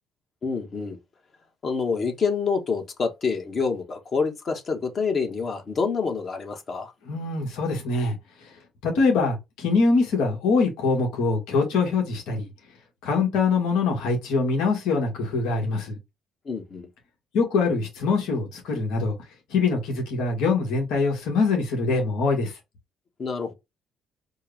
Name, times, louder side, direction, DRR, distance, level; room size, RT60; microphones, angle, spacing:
voice 1, 0.4-1.0 1.6-6.9 16.4-16.9 23.2-23.5, left 5 dB, 45° left, 1.3 m, -27 dB
voice 2, 7.0-8.2 8.4-8.5 8.8-12.5 13.0-16.0 17.3-19.1 19.5-22.5, left 4 dB, 80° left, 1.6 m, -23 dB
4.5 x 2.3 x 3.3 m
supercardioid pair, 75°, 0 cm